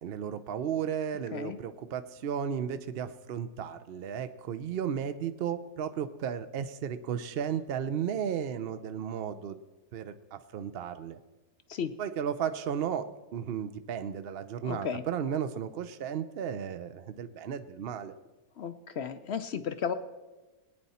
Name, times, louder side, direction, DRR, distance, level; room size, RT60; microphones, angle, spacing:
voice 1, 0.0-9.6 9.9-11.2 12.0-18.1, right 8 dB, 60° right, 10 dB, 0.6 m, -34 dB
voice 2, 14.6-15.0 18.6-19.9, left 7 dB, 60° left, 10 dB, 0.7 m, -34 dB
20.5 x 9.2 x 4.2 m, 1.2 s
omnidirectional pair, 1.5 m